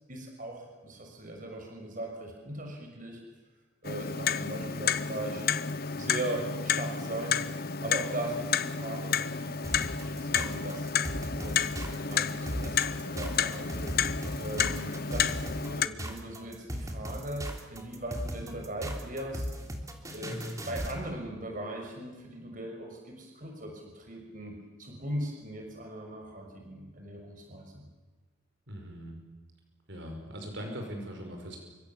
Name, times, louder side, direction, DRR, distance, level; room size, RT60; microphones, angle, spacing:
voice 1, 0.1-3.2 3.8-5.4 5.9-7.4 7.8-10.9 11.4-13.9 14.4-19.5 20.1-27.8, right 1 dB, 40° right, 1 dB, 6.1 m, -39 dB
Clock, 3.8-15.9, left 7 dB, 50° left, 1.1 m, -31 dB
sound 1, 9.6-21.0, equal, 15° right, 3.2 m, -37 dB
voice 2, 28.7-29.1 29.9-31.6, equal, 60° right, 3 dB, 5.4 m, -40 dB
29.5 x 25.5 x 7.3 m, 1.3 s
head